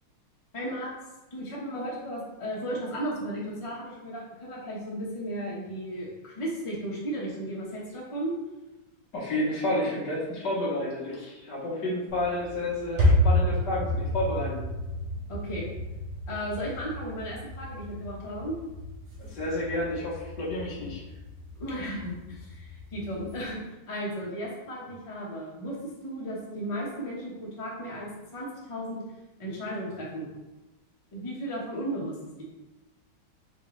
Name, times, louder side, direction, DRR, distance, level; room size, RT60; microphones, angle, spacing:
voice 1, 0.5-0.9 1.3-8.3 15.3-15.7 16.3-18.5 21.5-23.6 23.9-29.1 29.4-30.3 31.1-32.1, equal, 25° left, -5 dB, 0.7 m, -35 dB
voice 2, 9.1-14.6 19.2-21.0, left 1 dB, 60° left, -5 dB, 1.6 m, -30 dB
sound 1, 12.1-23.4, left 1 dB, 60° right, 1.4 m, -30 dB
5.1 x 3.0 x 3.1 m, 1.0 s
omnidirectional pair, 2.2 m